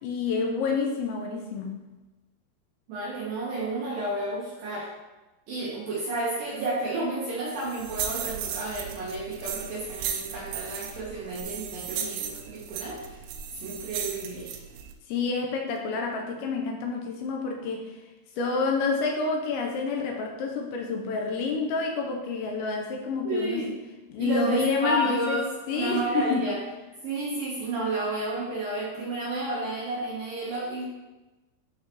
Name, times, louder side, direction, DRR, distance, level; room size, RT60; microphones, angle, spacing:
voice 1, 0.0-1.8 15.1-17.9 18.4-23.7 24.1-26.5, left 4 dB, 80° left, 2 dB, 2.9 m, -28 dB
voice 2, 2.9-4.9 5.5-13.1 13.6-14.5 23.2-23.7 24.2-26.6 27.0-30.9, right 2 dB, 70° right, -6 dB, 2.3 m, -31 dB
sound 1, 7.5-14.9, right 8 dB, 85° right, 2.5 m, -36 dB
12.0 x 4.7 x 3.0 m, 1.1 s
omnidirectional pair, 5.5 m